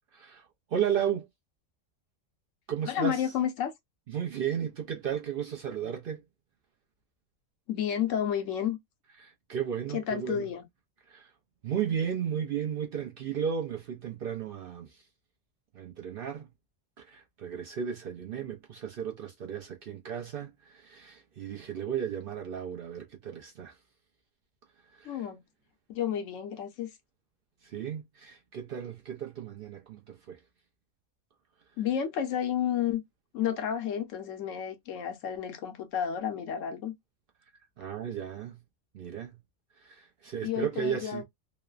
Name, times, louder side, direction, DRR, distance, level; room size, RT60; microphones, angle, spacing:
voice 1, 0.1-1.3 2.7-3.3 4.1-6.2 9.2-10.5 11.1-11.3 11.6-15.1 15.7-16.5 17.0-23.8 24.9-25.3 27.6-30.4 37.8-38.6 38.9-39.4 39.7-41.2, right 8 dB, 60° right, 0.6 m, -34 dB
voice 2, 2.9-3.7 7.7-8.8 9.9-10.6 25.0-25.4 25.9-26.9 31.8-33.0 33.3-36.9 40.4-41.2, left 9 dB, 80° left, 1.0 m, -31 dB
3.0 x 2.0 x 2.3 m
omnidirectional pair, 1.3 m